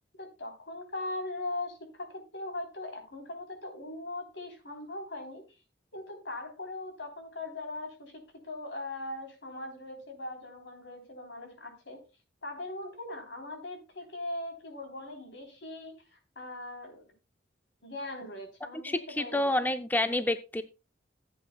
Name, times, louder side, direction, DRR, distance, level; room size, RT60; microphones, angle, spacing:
voice 1, 0.2-5.6 5.9-12.0 12.4-17.1 17.8-19.5, left 2 dB, 70° left, 4 dB, 3.5 m, -40 dB
voice 2, 18.8-20.6, left 1 dB, 10° left, 9 dB, 0.4 m, -28 dB
15.5 x 8.3 x 2.2 m, 0.30 s
head